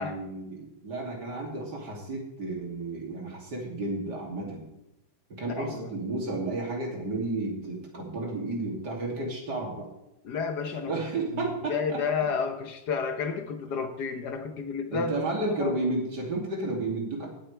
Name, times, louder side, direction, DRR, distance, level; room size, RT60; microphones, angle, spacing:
voice 1, 0.0-4.7 5.4-9.9 10.9-12.0 14.9-17.3, right 2 dB, 60° right, -1 dB, 3.2 m, -32 dB
voice 2, 5.5-5.9 10.2-10.9 11.3-15.2 15.6-15.7, left 5 dB, 65° left, 7 dB, 1.4 m, -31 dB
17.5 x 9.0 x 3.3 m, 0.89 s
omnidirectional pair, 2.0 m